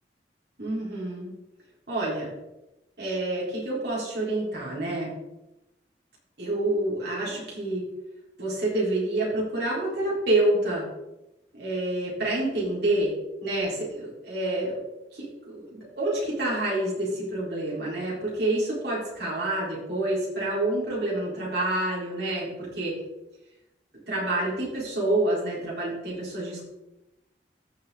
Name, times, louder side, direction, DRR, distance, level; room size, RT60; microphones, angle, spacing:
voice 1, 0.6-1.3 1.9-2.3 3.0-5.1 6.4-7.9 8.4-10.8 11.5-13.1 13.4-14.8 15.1-23.0 24.1-26.6, right 1 dB, 70° right, -6 dB, 4.1 m, -28 dB
14.5 x 5.6 x 3.9 m, 0.95 s
head